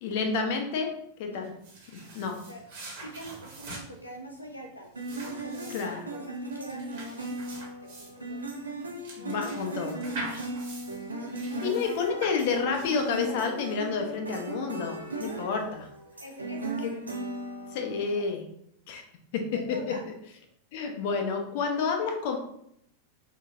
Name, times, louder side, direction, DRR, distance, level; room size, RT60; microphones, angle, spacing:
voice 1, 0.0-0.9 1.2-1.5 2.1-2.4 5.7-6.0 9.2-10.0 11.4-15.9 17.7-18.4 18.9-19.0 19.3-19.6 20.7-22.4, left 5 dB, 50° left, 4 dB, 0.8 m, -30 dB
sound 1, 1.4-13.6, right 2 dB, 55° right, 1.7 m, -44 dB
voice 2, 3.0-6.9 7.6-8.4 9.2-10.2 10.5-10.6 11.4-12.2 15.1-15.5 16.2-17.0 17.9-18.3 19.5-20.1, right 1 dB, 85° left, 1 dB, 0.6 m, -45 dB
sound 2, 5.0-18.2, right 2 dB, 80° right, 0.8 m, -37 dB
5.2 x 3.9 x 2.5 m, 0.72 s
figure-of-eight pair, 90°, 0 cm